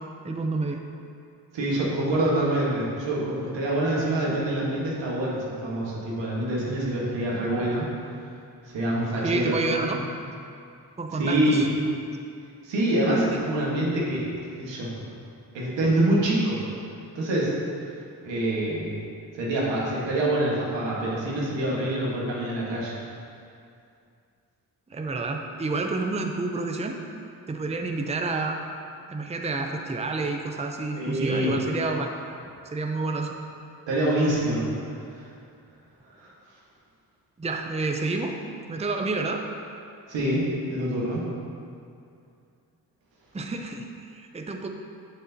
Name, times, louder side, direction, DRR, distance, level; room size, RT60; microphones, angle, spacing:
voice 1, 0.2-0.8 9.2-10.0 11.0-11.6 13.1-13.2 24.9-27.0 27.5-28.6 29.1-32.1 32.7-33.4 37.4-38.4 38.7-39.4 43.3-44.7, right 3 dB, 15° right, 3 dB, 0.6 m, -29 dB
voice 2, 1.5-7.8 8.7-9.9 11.1-11.6 12.6-14.2 14.6-15.1 15.5-16.6 17.1-17.5 18.2-18.9 19.3-22.9 31.0-31.5 33.9-34.7 35.1-35.3 36.2-36.3 40.1-41.3, right 1 dB, 85° right, -5 dB, 1.5 m, -26 dB
7.4 x 6.7 x 2.8 m, 2.4 s
supercardioid pair, 45°, 43 cm